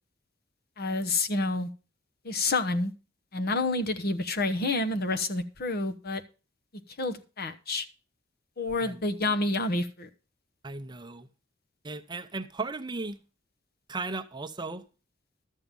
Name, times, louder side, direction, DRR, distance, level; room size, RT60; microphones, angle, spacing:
voice 1, 0.8-1.7 2.2-2.9 3.3-6.2 7.0-7.9 8.6-10.1, left 2 dB, 50° left, 1.0 m, -28 dB
voice 2, 10.6-11.3 11.8-13.2 13.9-14.8, right 3 dB, 20° right, 0.7 m, -36 dB
12.5 x 7.4 x 5.3 m
head